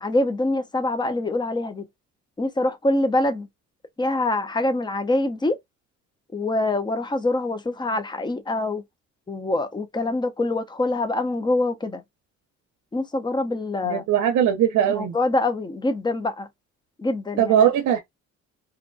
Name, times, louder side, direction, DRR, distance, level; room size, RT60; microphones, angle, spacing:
voice 1, 0.0-1.9 2.4-3.5 4.0-5.6 6.3-8.8 9.3-12.0 12.9-14.0 14.9-16.5 17.0-17.7, left 2 dB, 15° left, 0.6 m, -25 dB
voice 2, 13.8-15.1 17.4-18.0, right 9 dB, 70° right, 0.6 m, -20 dB
2.6 x 2.2 x 2.5 m
cardioid pair, 90°, 30 cm